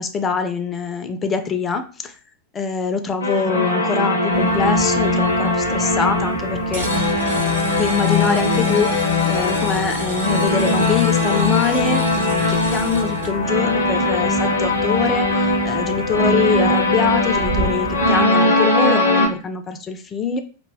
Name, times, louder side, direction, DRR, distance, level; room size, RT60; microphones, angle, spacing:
voice 1, 0.0-2.1 2.5-6.9 7.8-20.4, left 6 dB, 20° left, 7 dB, 0.3 m, -24 dB
sound 1, 3.2-19.3, left 2 dB, 75° left, 0.5 m, -20 dB
sound 2, 4.3-18.2, right 4 dB, 55° right, 0.5 m, -33 dB
sound 3, 6.7-13.3, right 1 dB, 85° right, 1.0 m, -33 dB
2.2 x 2.1 x 3.3 m, 0.38 s
figure-of-eight pair, 90°, 0 cm